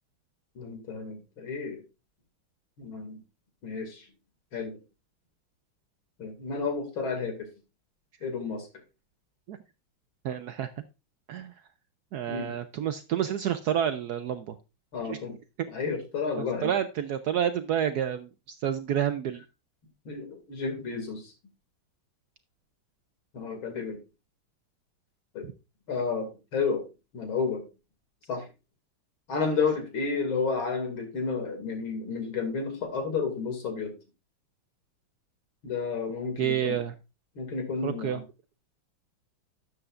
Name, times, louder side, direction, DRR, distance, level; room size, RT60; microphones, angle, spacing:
voice 1, 0.6-1.8 2.8-3.2 3.6-4.1 4.5-4.8 6.2-7.5 8.2-8.7 12.3-12.5 14.9-15.3 15.7-16.8 20.1-21.3 23.3-24.0 25.3-25.5 25.9-26.8 27.1-27.7 28.3-28.5 29.3-34.0 35.6-36.8 37.4-38.2, left 5 dB, 80° left, 6 dB, 3.1 m, -31 dB
voice 2, 10.2-10.7 11.3-11.5 12.1-14.5 15.0-15.2 16.6-19.4 25.4-25.5 36.4-36.9 37.8-38.2, right 9 dB, 70° right, 10 dB, 0.9 m, -29 dB
12.5 x 7.9 x 2.5 m, 0.28 s
omnidirectional pair, 2.2 m